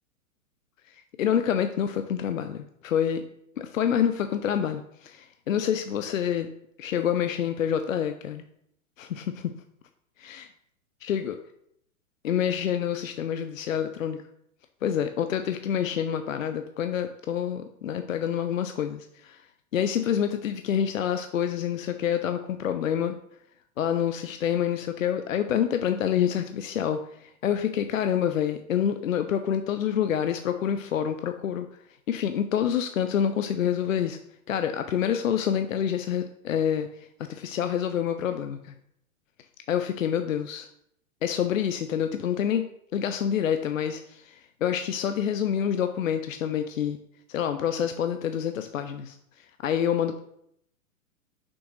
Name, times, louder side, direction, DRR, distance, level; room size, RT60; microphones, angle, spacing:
voice 1, 0.9-3.2 3.6-6.5 6.8-8.4 9.0-9.5 10.2-10.5 11.0-11.4 12.2-14.2 14.8-19.5 19.7-23.2 23.8-31.7 32.1-34.2 34.5-38.8 39.7-40.7 41.2-42.7 42.9-47.0 47.3-50.2, left 9 dB, 70° left, 8 dB, 0.6 m, -27 dB
6.1 x 6.1 x 3.2 m, 0.73 s
figure-of-eight pair, 105°, 42 cm